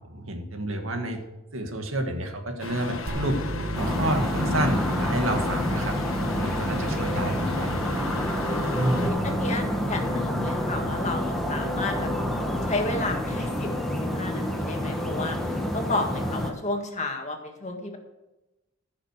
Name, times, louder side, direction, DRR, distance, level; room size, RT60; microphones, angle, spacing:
voice 1, 0.1-1.2 1.5-3.4 3.7-6.0 6.3-7.8 8.7-9.2, right 1 dB, 80° right, 4 dB, 2.0 m, -29 dB
sound 1, 2.6-9.1, left 3 dB, 85° left, 1.4 m, -36 dB
sound 2, 3.1-14.0, right 1 dB, 50° right, 1.3 m, -37 dB
sound 3, 3.7-16.5, left 1 dB, ahead, 1.5 m, -28 dB
voice 2, 7.0-7.4 9.0-12.1 12.7-18.0, left 2 dB, 35° left, 4 dB, 1.7 m, -32 dB
15.0 x 6.5 x 6.5 m, 1.0 s
head